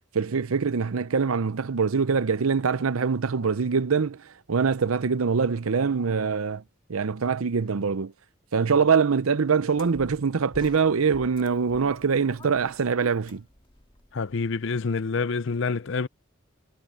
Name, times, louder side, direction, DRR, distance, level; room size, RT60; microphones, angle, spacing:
voice 1, 0.1-6.6 6.9-8.1 8.5-13.4, right 5 dB, 85° right, 0.7 m, -24 dB
sound 1, 9.7-14.9, left 1 dB, 25° left, 2.2 m, -49 dB
voice 2, 14.1-16.1, left 4 dB, 60° left, 0.6 m, -27 dB
head